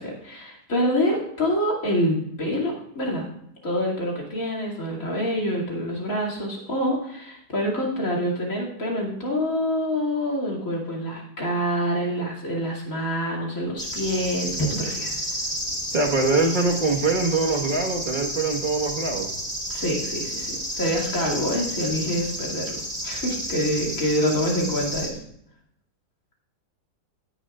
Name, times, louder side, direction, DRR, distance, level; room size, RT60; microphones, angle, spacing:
voice 1, 0.0-3.3 3.6-15.2 19.7-25.2, equal, 50° left, -2 dB, 2.9 m, -26 dB
sound 1, 13.8-25.1, equal, ahead, 3.4 m, -31 dB
voice 2, 15.9-19.3, right 3 dB, 30° right, 0 dB, 1.4 m, -23 dB
16.0 x 9.9 x 2.4 m, 0.73 s
omnidirectional pair, 1.9 m